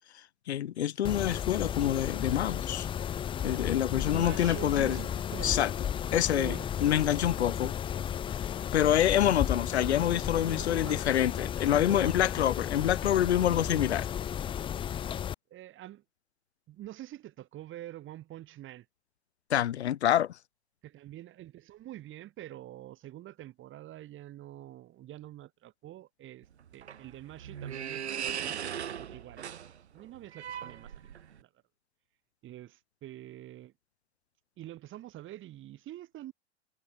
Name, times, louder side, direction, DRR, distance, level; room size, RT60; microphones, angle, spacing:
voice 1, 0.5-2.9 3.4-5.0 5.4-5.7 6.1-6.6 6.8-7.7 8.7-14.1 19.5-20.3, left 11 dB, 80° left, 0.9 m, -26 dB
Mechanisms, 1.0-15.3, left 9 dB, 15° left, 0.4 m, -34 dB
voice 2, 3.4-5.6 6.3-6.7 10.5-11.1 11.7-12.2 15.5-16.0 16.7-18.9 20.8-26.5 26.7-28.6 29.0-29.5 29.9-31.5 32.4-33.7 34.6-36.3, right 14 dB, 40° right, 7.9 m, -46 dB
sound 1, 26.4-31.4, right 9 dB, 90° right, 1.0 m, -39 dB
hypercardioid pair, 100°, 32 cm